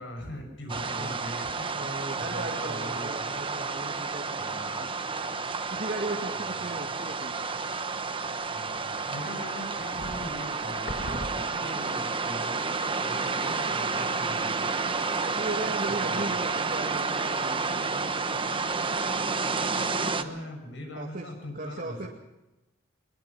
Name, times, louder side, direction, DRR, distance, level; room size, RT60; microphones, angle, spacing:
voice 1, 0.0-1.8 2.2-3.3 4.4-4.9 6.4-6.8 8.5-12.6 13.0-14.7 15.8-16.4 19.7-22.1, left 1 dB, 70° left, 3 dB, 6.2 m, -41 dB
sound 1, 0.7-20.2, right 4 dB, 25° right, 1.1 m, -30 dB
voice 2, 1.7-4.9 5.7-7.4 15.2-18.6 20.1-20.4 20.9-22.1, right 2 dB, 50° right, 0 dB, 2.2 m, -37 dB
sound 2, 9.5-12.0 12.4-12.5 12.8-13.4 14.0-14.6 14.9-18.7 19.1-19.7, left 1 dB, 45° left, 1.4 m, -44 dB
22.5 x 22.0 x 5.9 m, 1.0 s
head